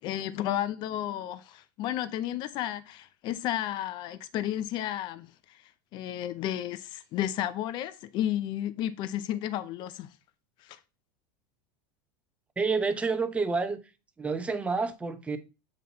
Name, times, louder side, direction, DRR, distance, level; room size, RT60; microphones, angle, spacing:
voice 1, 0.0-5.6 5.9-10.1 10.6-10.8, left 12 dB, 45° left, 0.6 m, -32 dB
voice 2, 12.6-13.8 14.2-15.4, right 4 dB, 10° right, 0.8 m, -28 dB
7.6 x 4.0 x 4.1 m
supercardioid pair, 130°, 11 cm